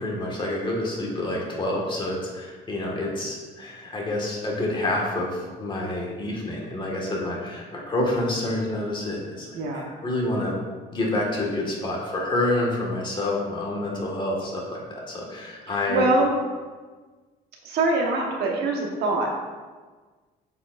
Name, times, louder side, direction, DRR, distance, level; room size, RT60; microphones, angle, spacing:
voice 1, 0.0-10.5 10.9-16.1, left 1 dB, 30° left, -2 dB, 1.7 m, -28 dB
voice 2, 15.9-16.3 17.6-19.3, right 2 dB, 70° right, 0 dB, 1.2 m, -23 dB
8.3 x 4.9 x 2.5 m, 1.4 s
cardioid pair, 110°, 17 cm